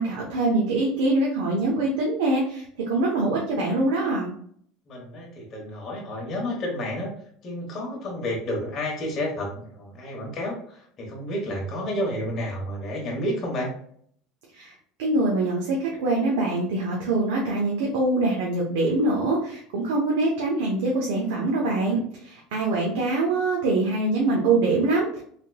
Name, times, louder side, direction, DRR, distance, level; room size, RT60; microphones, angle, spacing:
voice 1, 0.0-4.3 14.5-14.7 15.0-25.2, right 2 dB, 90° right, -2 dB, 0.8 m, -24 dB
voice 2, 4.9-7.1 7.4-13.7, left 1 dB, 30° left, -2 dB, 1.0 m, -30 dB
3.4 x 2.9 x 2.2 m, 0.62 s
cardioid pair, 165°, 0 cm